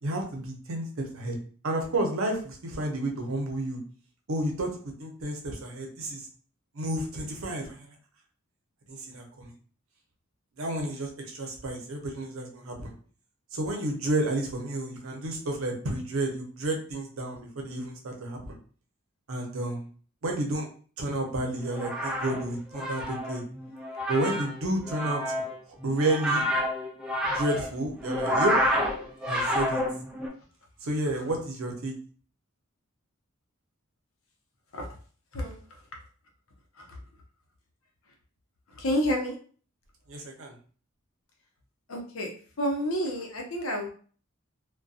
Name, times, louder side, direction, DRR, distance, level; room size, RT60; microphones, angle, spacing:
voice 1, 0.0-1.4 1.6-3.8 4.3-4.7 5.0-6.3 6.7-7.9 8.9-9.5 10.6-12.9 13.5-18.6 19.3-19.9 20.2-20.7 21.0-23.4 24.1-25.4 25.8-26.4 27.3-28.5 29.3-29.8 30.8-31.9 40.1-40.5, right 1 dB, 75° right, 2 dB, 0.7 m, -31 dB
sound 1, 21.6-30.3, equal, 5° right, 0.4 m, -29 dB
voice 2, 38.8-39.3 41.9-42.3 42.6-43.9, equal, 85° left, 1 dB, 0.7 m, -29 dB
2.6 x 2.2 x 2.3 m, 0.42 s
head